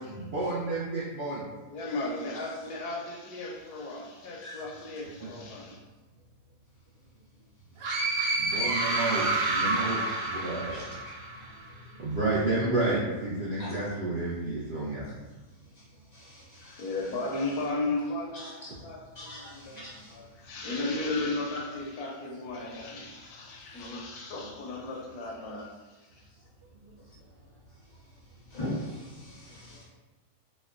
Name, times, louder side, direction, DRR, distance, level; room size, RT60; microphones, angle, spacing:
voice 1, 0.0-1.4 8.4-10.8 12.0-15.0, right 2 dB, 65° right, -8 dB, 0.6 m, -30 dB
voice 2, 1.7-5.8 16.5-19.8 20.1-25.7, left 2 dB, 75° left, -1 dB, 1.0 m, -35 dB
sound 1, 7.8-11.5, right 2 dB, 90° right, 1.2 m, -29 dB
voice 3, 16.1-16.8 18.3-18.8 19.2-20.1 28.5-29.8, left 1 dB, 35° left, -7 dB, 0.6 m, -41 dB
4.2 x 2.2 x 2.4 m, 1.2 s
omnidirectional pair, 1.7 m